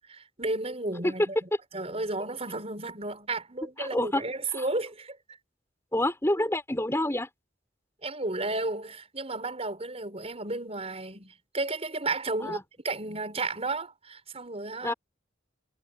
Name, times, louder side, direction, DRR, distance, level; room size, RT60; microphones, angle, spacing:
voice 1, 0.1-5.2 8.0-12.6 12.8-14.9, right 2 dB, 35° right, 6.0 m, -33 dB
voice 2, 3.8-4.2 4.5-4.7 5.9-7.3 12.4-12.6 14.8-14.9, left 1 dB, 15° left, 5.4 m, -27 dB
head